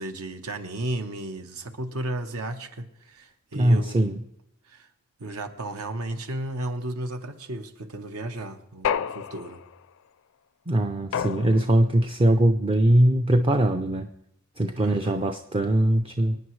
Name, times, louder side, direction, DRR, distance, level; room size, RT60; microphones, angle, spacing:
voice 1, 0.0-4.0 4.7-4.9 5.2-9.6 14.7-15.3, right 1 dB, 70° right, 1.1 m, -34 dB
voice 2, 3.5-4.2 10.7-14.1 14.6-16.4, right 1 dB, 25° right, 0.5 m, -21 dB
sound 1, 8.8-9.8 11.1-12.0, left 8 dB, 60° left, 0.4 m, -30 dB
25.0 x 9.4 x 3.2 m
head